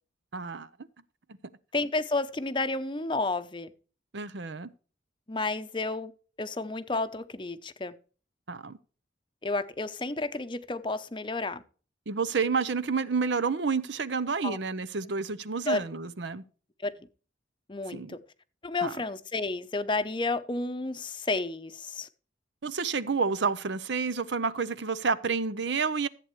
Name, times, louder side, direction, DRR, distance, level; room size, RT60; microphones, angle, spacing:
voice 1, 0.3-0.7 4.1-4.7 8.5-8.8 12.1-16.4 17.9-18.1 18.8-18.9 22.6-26.1, right 5 dB, 70° right, 0.7 m, -29 dB
voice 2, 1.7-3.7 5.3-6.1 6.4-7.9 9.4-11.6 14.4-14.6 15.7-15.8 16.8-16.9 17.7-18.2 18.6-22.1, left 3 dB, 25° left, 0.7 m, -31 dB
14.5 x 8.4 x 3.2 m
head